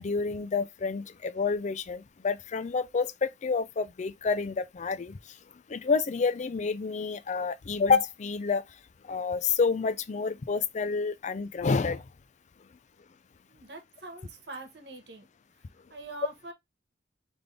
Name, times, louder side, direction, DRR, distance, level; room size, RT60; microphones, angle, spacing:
voice 1, 0.0-5.1 5.7-8.6 9.1-12.0, left 5 dB, 40° left, 0.4 m, -28 dB
voice 2, 13.5-15.3 15.9-16.5, right 3 dB, 70° right, 1.2 m, -43 dB
4.0 x 3.4 x 3.3 m
head